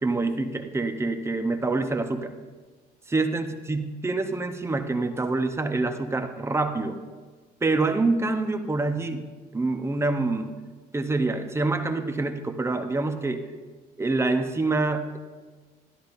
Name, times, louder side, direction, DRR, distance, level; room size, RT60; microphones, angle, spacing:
voice 1, 0.0-2.3 3.1-7.0 7.6-10.5 10.9-13.4 14.0-15.2, right 3 dB, 15° right, 6 dB, 0.8 m, -26 dB
13.0 x 11.5 x 2.6 m, 1.4 s
cardioid pair, 110°, 17 cm